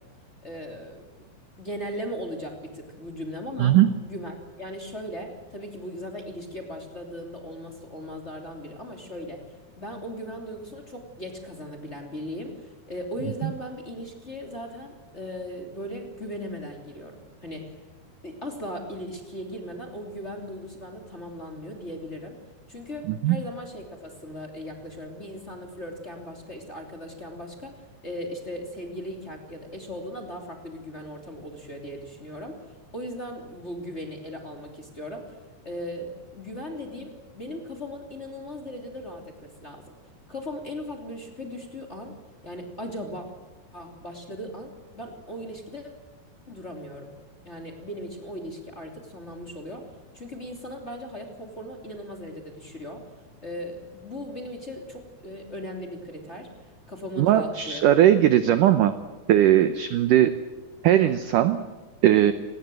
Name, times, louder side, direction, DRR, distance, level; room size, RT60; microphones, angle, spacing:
voice 1, 0.4-1.0 1.6-9.5 9.8-17.7 18.2-22.4 22.7-27.7 28.0-32.6 32.9-35.3 35.6-39.9 40.3-42.2 42.4-43.3 43.7-45.9 46.5-47.1 47.4-49.8 50.1-53.0 53.4-56.5 56.9-57.9, equal, 20° left, 2 dB, 2.5 m, -38 dB
voice 2, 3.6-3.9 13.4-13.5 23.1-23.4 57.2-58.9 59.3-60.4 60.8-61.6 62.0-62.3, right 12 dB, 80° right, 11 dB, 1.9 m, -19 dB
29.0 x 19.5 x 7.7 m, 1.2 s
omnidirectional pair, 5.0 m